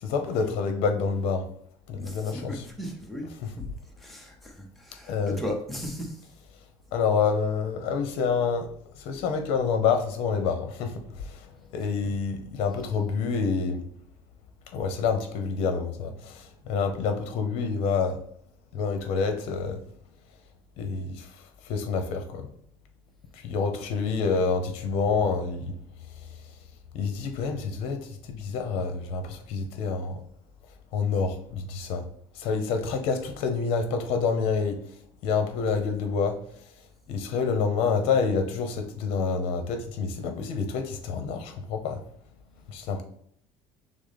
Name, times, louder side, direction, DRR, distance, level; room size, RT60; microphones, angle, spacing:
voice 1, 0.0-1.5 1.9-2.7 3.4-3.5 5.1-5.4 6.9-8.7 9.0-11.4 11.7-13.8 14.7-18.2 18.7-19.8 20.8-21.3 21.7-22.5 23.4-25.7 26.9-30.2 30.9-32.0 32.4-34.8 35.2-36.4 37.1-42.0 42.7-43.0, left 5 dB, 60° left, 6 dB, 0.8 m, -27 dB
voice 2, 1.9-3.3 4.0-6.1, equal, ahead, 0 dB, 0.6 m, -36 dB
6.2 x 2.1 x 4.1 m, 0.66 s
cardioid pair, 175°, 11 cm